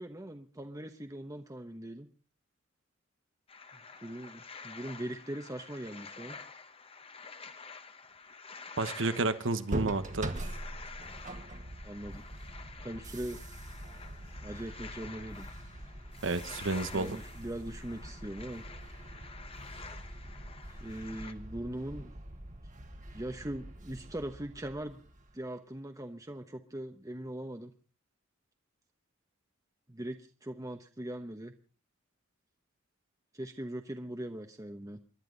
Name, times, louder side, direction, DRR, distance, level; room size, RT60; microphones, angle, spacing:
voice 1, 0.0-2.1 3.7-6.4 11.8-12.2 12.8-13.4 14.4-15.5 16.9-18.6 20.8-22.1 23.1-25.0 25.3-27.7 29.9-31.5 33.3-35.0, right 1 dB, 15° right, 5 dB, 1.0 m, -41 dB
sound 1, 3.5-21.3, left 4 dB, 30° left, 1.1 m, -49 dB
voice 2, 8.8-10.3 16.2-17.2, right 3 dB, 75° right, 12 dB, 1.2 m, -31 dB
sound 2, 9.7-25.4, right 1 dB, 40° right, 1.6 m, -43 dB
29.0 x 11.5 x 4.0 m, 0.37 s
head